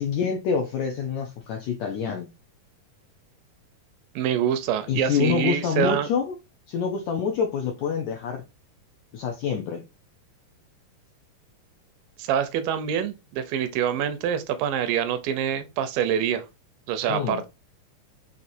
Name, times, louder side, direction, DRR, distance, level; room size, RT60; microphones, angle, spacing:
voice 1, 0.0-2.3 4.9-6.3 6.7-8.4 9.1-9.8 17.1-17.4, left 6 dB, 80° left, 1.6 m, -26 dB
voice 2, 4.2-6.1 12.2-16.5 16.9-17.5, right 9 dB, 85° right, 2.3 m, -25 dB
6.4 x 2.8 x 2.6 m
omnidirectional pair, 3.9 m